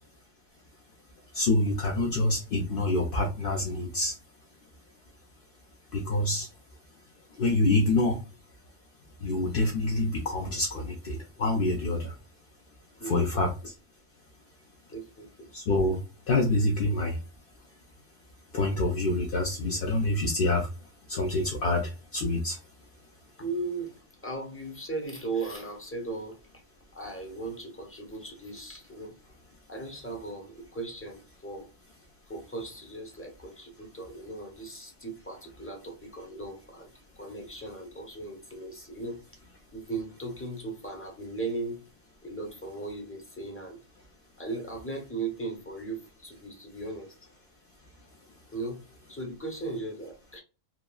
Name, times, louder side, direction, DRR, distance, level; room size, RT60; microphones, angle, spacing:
voice 1, 1.3-4.1 5.9-6.5 7.4-8.2 9.2-12.1 13.0-13.7 15.5-16.0 16.3-17.2 18.5-20.7 21.1-22.6, left 2 dB, 60° left, 0.6 m, -26 dB
voice 2, 13.0-13.4 14.9-15.5 23.4-23.9 24.2-26.4 26.9-29.1 29.7-31.7 32.3-39.2 39.7-41.8 42.2-43.8 44.4-47.1 48.5-48.8 49.1-50.4, right 3 dB, 15° left, 0.5 m, -37 dB
2.9 x 2.3 x 2.2 m
omnidirectional pair, 1.4 m